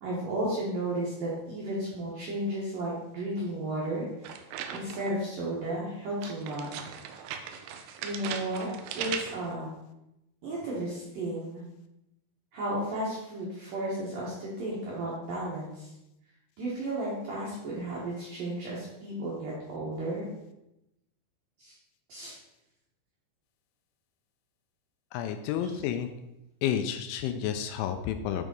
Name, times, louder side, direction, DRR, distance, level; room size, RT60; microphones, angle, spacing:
voice 1, 0.0-4.1 4.7-6.9 7.5-7.6 8.0-8.7 8.9-9.7 10.4-11.6 12.5-15.9 16.6-20.3 21.6-21.7 22.1-22.3 25.7-25.8, right 1 dB, 65° right, -6 dB, 2.2 m, -33 dB
sound 1, 4.2-5.2 6.2-9.5, right 8 dB, 85° right, 2.7 m, -38 dB
voice 2, 25.1-26.1 26.6-28.5, left 9 dB, 85° left, 8 dB, 2.8 m, -30 dB
9.1 x 3.6 x 5.3 m, 0.88 s
omnidirectional pair, 5.7 m